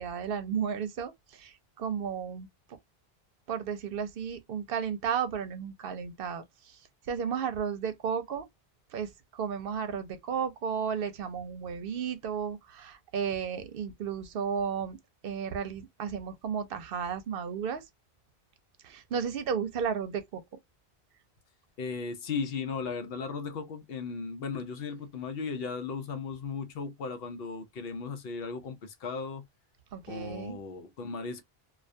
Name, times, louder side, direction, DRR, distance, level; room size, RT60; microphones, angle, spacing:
voice 1, 0.0-2.5 3.5-6.8 7.1-8.5 8.9-15.0 15.2-17.8 18.8-20.4 29.9-30.6, right 7 dB, 70° right, 0.7 m, -33 dB
voice 2, 21.8-29.4 30.1-31.4, left 5 dB, 70° left, 0.8 m, -36 dB
2.3 x 2.2 x 2.5 m
omnidirectional pair, 1.0 m